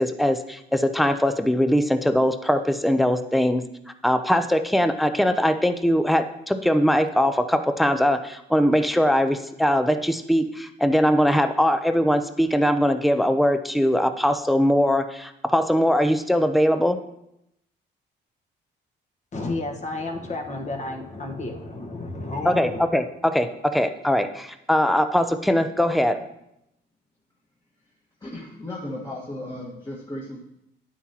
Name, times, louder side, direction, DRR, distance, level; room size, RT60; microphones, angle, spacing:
voice 1, 0.0-3.6 4.0-17.0 22.5-26.3, equal, ahead, 9 dB, 0.5 m, -21 dB
voice 2, 19.3-22.8, left 2 dB, 35° left, 2 dB, 1.3 m, -31 dB
voice 3, 28.2-30.4, left 1 dB, 20° left, -4 dB, 1.5 m, -35 dB
9.0 x 8.5 x 2.9 m, 0.81 s
cardioid pair, 90°, 20 cm